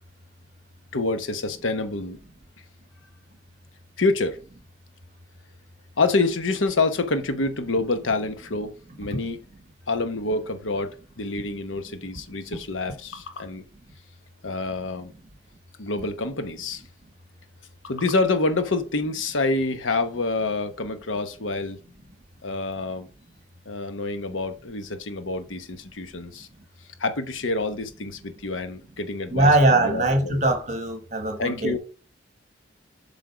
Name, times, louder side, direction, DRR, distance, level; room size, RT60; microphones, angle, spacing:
voice 1, 0.9-2.2 4.0-4.4 6.0-8.7 9.0-9.4 9.9-13.6 14.4-15.1 15.8-16.8 17.8-21.8 22.4-23.1 23.7-26.5 27.0-30.4 31.4-31.8, left 3 dB, 90° left, 1.0 m, -27 dB
voice 2, 29.3-31.8, right 2 dB, 35° right, 1.2 m, -21 dB
7.6 x 3.7 x 4.7 m
head